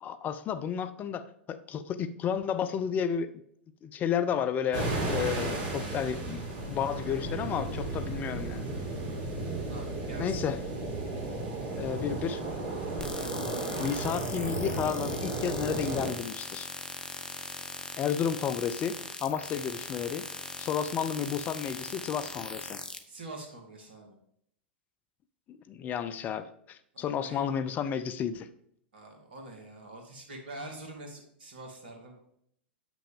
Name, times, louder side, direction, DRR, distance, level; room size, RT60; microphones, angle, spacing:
voice 1, 0.0-3.3 3.8-6.4 6.7-8.7 10.2-10.6 11.1-11.2 11.8-12.4 13.8-16.7 18.0-20.3 20.6-22.8 25.5-28.5, left 8 dB, 30° left, 12 dB, 0.5 m, -32 dB
sound 1, 4.7-16.1, right 2 dB, 50° right, 3.0 m, -34 dB
voice 2, 9.7-10.5 23.1-24.2 26.9-27.5 28.9-32.2, right 2 dB, 70° right, 2 dB, 2.0 m, -45 dB
sound 2, 13.0-23.0, left 3 dB, 15° left, 0.9 m, -40 dB
8.2 x 6.0 x 3.6 m, 0.69 s
figure-of-eight pair, 95°, 6 cm